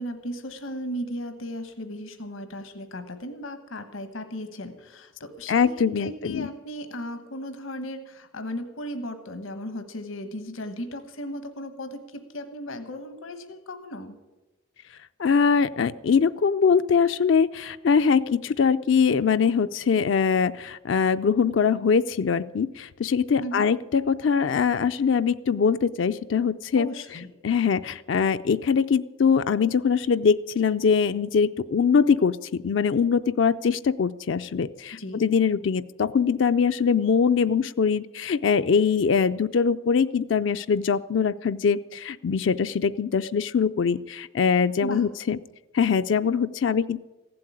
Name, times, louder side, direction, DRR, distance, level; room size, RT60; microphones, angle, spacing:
voice 1, 0.0-14.2 23.4-23.7 26.8-27.3 34.9-35.2 44.8-45.0, equal, 85° left, 8 dB, 1.3 m, -36 dB
voice 2, 5.5-6.5 15.2-26.9 27.4-45.4 45.7-47.0, left 6 dB, 65° left, 11 dB, 0.4 m, -22 dB
15.5 x 7.8 x 9.8 m, 1.1 s
head